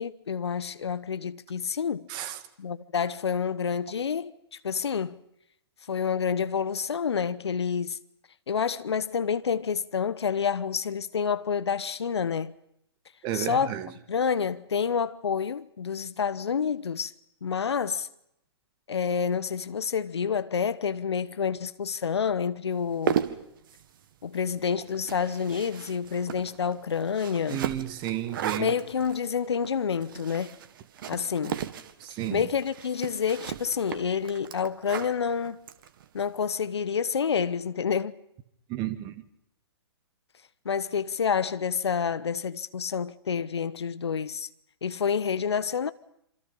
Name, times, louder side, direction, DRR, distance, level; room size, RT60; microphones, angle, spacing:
voice 1, 0.0-2.1 2.6-5.2 5.9-8.0 8.5-12.5 13.3-13.7 14.1-17.1 17.4-18.1 18.9-23.2 24.2-27.6 28.6-30.6 31.1-31.6 32.3-35.7 36.1-38.2 40.6-44.5 44.8-45.9, left 6 dB, 70° left, 1.1 m, -28 dB
voice 2, 13.2-13.9 27.5-28.7 32.0-32.4 38.7-39.1, right 12 dB, 30° right, 2.1 m, -32 dB
sound 1, 22.8-36.3, right 9 dB, 50° right, 1.9 m, -36 dB
27.0 x 26.0 x 5.6 m
figure-of-eight pair, 120°, 14 cm